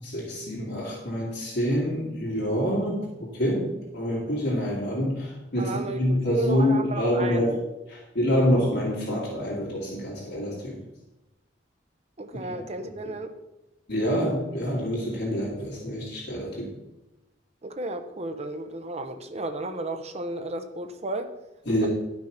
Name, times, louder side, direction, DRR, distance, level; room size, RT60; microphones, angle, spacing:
voice 1, 0.0-7.5 7.9-10.8 13.9-16.7 21.6-21.9, equal, 65° left, 3.0 m, -26 dB
voice 2, 5.6-7.6 12.2-13.3 17.6-21.3, right 2 dB, 35° right, 0.8 m, -33 dB
11.5 x 6.2 x 5.8 m
head